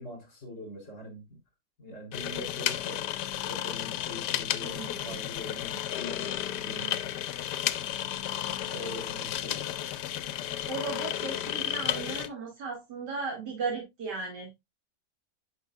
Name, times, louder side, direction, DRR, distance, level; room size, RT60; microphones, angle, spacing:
voice 1, 0.0-1.4 1.8-3.1 3.5-7.3 8.7-9.7, left 1 dB, 45° left, 3.6 m, -43 dB
sound 1, 2.1-12.3, left 12 dB, 85° left, 1.2 m, -33 dB
voice 2, 4.6-5.2 8.6-9.0 10.7-14.6, right 4 dB, 90° right, 2.7 m, -36 dB
9.4 x 5.4 x 2.3 m
omnidirectional pair, 1.8 m